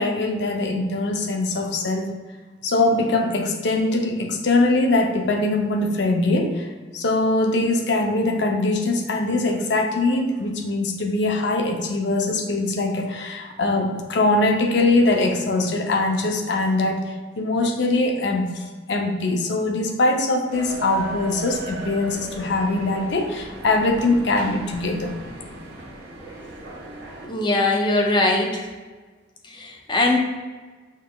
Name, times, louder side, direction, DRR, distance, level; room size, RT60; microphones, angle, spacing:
voice 1, 0.0-2.1 2.6-6.7 6.9-25.1, left 2 dB, 70° left, 4 dB, 0.6 m, -22 dB
sound 1, 20.5-27.3, right 2 dB, 55° right, 0.9 m, -37 dB
voice 2, 27.2-28.7 29.4-30.2, left 2 dB, 25° left, 1 dB, 0.5 m, -21 dB
5.2 x 3.9 x 2.2 m, 1.4 s
head